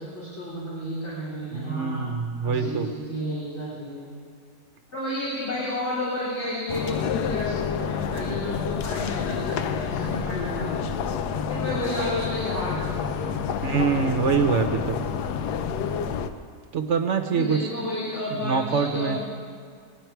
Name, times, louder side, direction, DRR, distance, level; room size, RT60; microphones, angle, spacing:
voice 1, 0.0-2.1 2.4-4.1 4.9-10.9 11.5-13.5 17.2-19.2, left 1 dB, 45° left, -10 dB, 3.2 m, -31 dB
voice 2, 1.5-2.9 13.6-15.0 16.7-17.6 18.3-19.2, right 6 dB, 55° right, 6 dB, 1.0 m, -24 dB
sound 1, 6.7-16.3, left 7 dB, 90° left, 1.2 m, -28 dB
20.5 x 9.2 x 4.6 m, 2.1 s
omnidirectional pair, 1.7 m